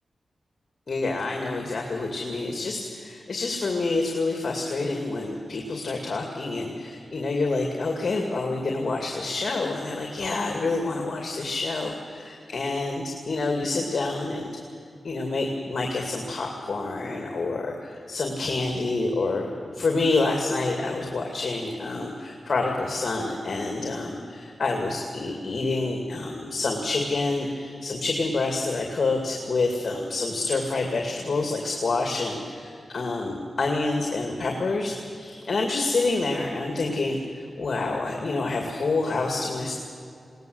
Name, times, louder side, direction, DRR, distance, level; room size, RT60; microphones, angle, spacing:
voice 1, 0.9-14.5 15.0-19.5 19.7-39.7, left 3 dB, 55° left, 2 dB, 2.4 m, -27 dB
21.0 x 18.5 x 8.0 m, 2.4 s
wide cardioid pair, 75°, 0 cm